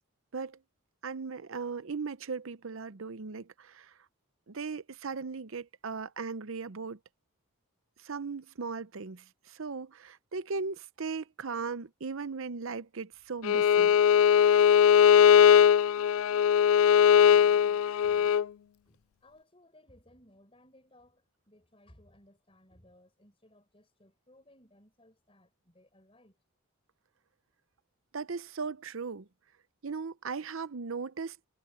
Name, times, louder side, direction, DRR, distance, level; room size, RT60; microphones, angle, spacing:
voice 1, 1.0-3.9 4.5-7.0 8.0-13.9 28.1-29.3 29.8-31.4, right 4 dB, 65° right, 0.7 m, -37 dB
Bowed string instrument, 13.4-18.4, left 8 dB, 75° left, 0.3 m, -20 dB
voice 2, 17.2-18.3 18.9-26.4, left 1 dB, 25° left, 5.4 m, -61 dB
head